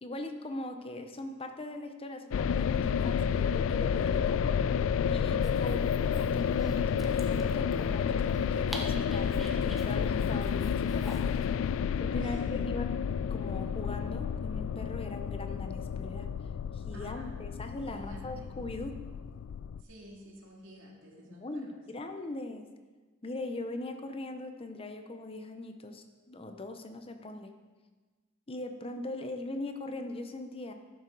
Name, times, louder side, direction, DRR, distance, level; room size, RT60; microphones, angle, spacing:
voice 1, 0.0-4.4 5.1-11.5 12.0-12.9 13.3-16.3 16.7-19.0 21.3-22.7 23.2-27.5 28.5-30.7, left 2 dB, 30° left, 6 dB, 0.7 m, -40 dB
sound 1, 2.3-19.8, left 7 dB, 80° left, 0.3 m, -30 dB
voice 2, 5.2-5.5 12.1-12.7 16.9-18.5 19.8-21.8, right 1 dB, 85° right, -2 dB, 2.4 m, -51 dB
Dog, 5.3-11.5, equal, ahead, 1.0 m, -48 dB
11.5 x 7.3 x 4.7 m, 1.3 s
head